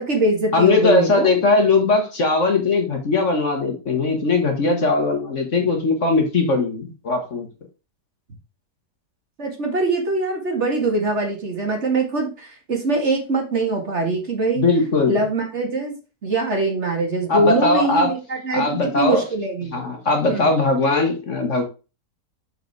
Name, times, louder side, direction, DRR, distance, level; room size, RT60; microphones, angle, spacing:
voice 1, 0.0-1.3 9.4-14.6 15.1-16.0 16.2-19.8 20.3-20.5, right 3 dB, 40° right, 2 dB, 2.0 m, -23 dB
voice 2, 0.5-7.5 14.6-15.2 17.3-18.1 18.5-19.2 19.7-21.6, left 3 dB, 45° left, 4 dB, 1.6 m, -19 dB
6.6 x 4.8 x 4.6 m, 0.31 s
omnidirectional pair, 1.8 m